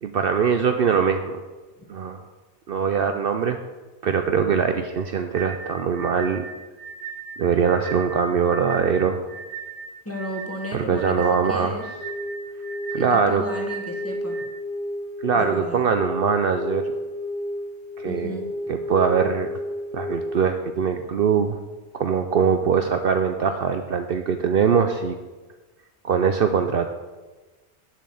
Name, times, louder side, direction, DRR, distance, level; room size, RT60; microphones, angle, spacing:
voice 1, 0.0-1.4 1.9-2.2 2.7-3.6 4.0-6.4 7.4-9.2 10.7-11.7 12.9-13.4 15.2-16.8 18.0-18.4 18.7-19.6 19.9-21.6 21.9-25.2 26.0-26.9, right 6 dB, 60° right, 7 dB, 0.8 m, -22 dB
sound 1, 5.3-14.5, right 6 dB, 30° right, 1.6 m, -37 dB
voice 2, 10.0-11.8 13.0-14.4 15.3-15.9 18.0-18.5, equal, 10° left, 0 dB, 1.5 m, -34 dB
sound 2, 12.0-20.4, left 1 dB, 45° right, 1.7 m, -31 dB
7.6 x 7.3 x 6.9 m, 1.2 s
omnidirectional pair, 1.2 m